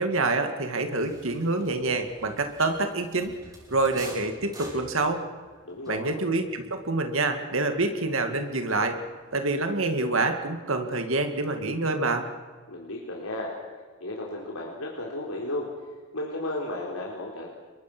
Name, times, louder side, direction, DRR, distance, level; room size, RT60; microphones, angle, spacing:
voice 1, 0.0-3.4 3.7-5.2 5.9-9.0 9.3-12.2, right 2 dB, 70° right, 6 dB, 2.1 m, -26 dB
sound 1, 1.0-9.1 9.4-10.5, equal, 15° right, 7.3 m, -47 dB
voice 2, 5.7-6.2 12.7-13.5 14.0-15.7 16.1-17.5, left 1 dB, 85° left, -2 dB, 3.9 m, -34 dB
28.5 x 22.5 x 6.1 m, 1.4 s
head